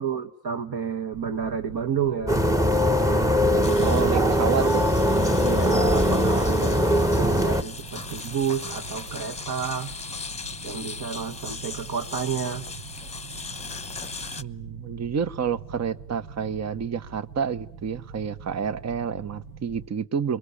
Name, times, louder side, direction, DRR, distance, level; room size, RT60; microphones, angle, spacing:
voice 1, 0.0-2.4 3.1-4.3 4.6-4.9 5.4-9.9 10.6-12.7, right 7 dB, 50° right, 2.2 m, -31 dB
sound 1, 1.1-19.9, right 5 dB, 90° right, 1.4 m, -43 dB
sound 2, 2.3-7.6, equal, 5° right, 1.2 m, -21 dB
sound 3, 3.6-14.4, left 4 dB, 15° left, 1.1 m, -38 dB
voice 2, 3.8-4.8 14.4-20.4, right 7 dB, 35° right, 1.1 m, -29 dB
28.0 x 23.0 x 8.6 m
supercardioid pair, 70°, 47 cm